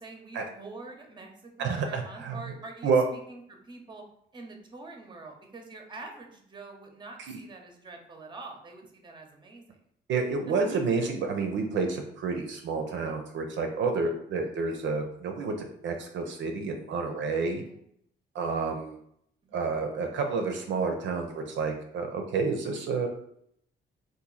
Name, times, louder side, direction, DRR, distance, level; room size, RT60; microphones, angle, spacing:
voice 1, 0.0-4.0 4.3-9.8 10.5-10.6 13.9-14.1 17.6-17.8 19.4-19.7, right 3 dB, 25° right, 3 dB, 0.7 m, -45 dB
voice 2, 1.6-2.4 2.8-3.0 7.3-7.4 10.1-17.6 18.3-19.0 19.5-23.1, right 4 dB, 70° right, 3 dB, 0.5 m, -29 dB
2.8 x 2.6 x 3.8 m, 0.71 s
cardioid pair, 90°, 20 cm